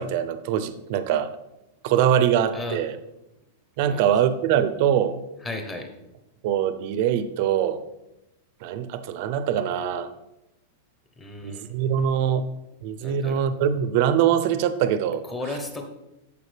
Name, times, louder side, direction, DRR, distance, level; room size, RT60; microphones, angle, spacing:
voice 1, 0.0-1.3 1.8-3.0 3.8-5.2 6.4-7.8 8.6-10.1 11.4-12.4 12.8-15.2, right 9 dB, 40° right, 11 dB, 0.5 m, -23 dB
voice 2, 5.4-5.9 11.2-11.7 13.0-13.4 15.2-15.9, left 2 dB, 10° left, 4 dB, 0.8 m, -34 dB
13.5 x 4.9 x 3.3 m, 0.91 s
supercardioid pair, 180°, 0 cm